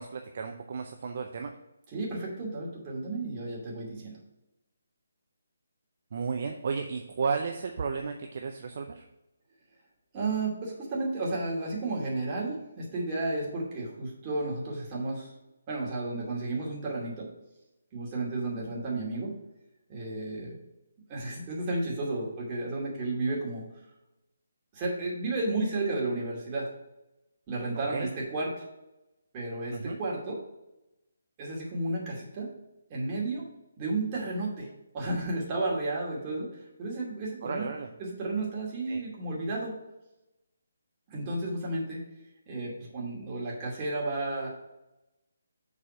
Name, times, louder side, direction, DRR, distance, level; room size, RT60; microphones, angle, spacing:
voice 1, 0.0-1.5 6.1-9.0 27.7-28.1 29.7-30.0 37.4-37.9 38.9-39.0, right 5 dB, 45° right, 4 dB, 0.6 m, -33 dB
voice 2, 1.9-4.2 10.1-15.3 15.7-17.3 17.9-19.3 19.9-20.6 21.1-23.6 24.7-26.7 27.5-28.6 29.3-30.4 31.4-32.5 32.9-33.4 33.8-34.7 34.9-36.5 36.8-37.7 38.0-39.7 41.1-42.0 42.5-44.5, right 2 dB, 25° right, -4 dB, 2.5 m, -32 dB
7.1 x 4.1 x 6.0 m, 0.95 s
figure-of-eight pair, 145°, 0 cm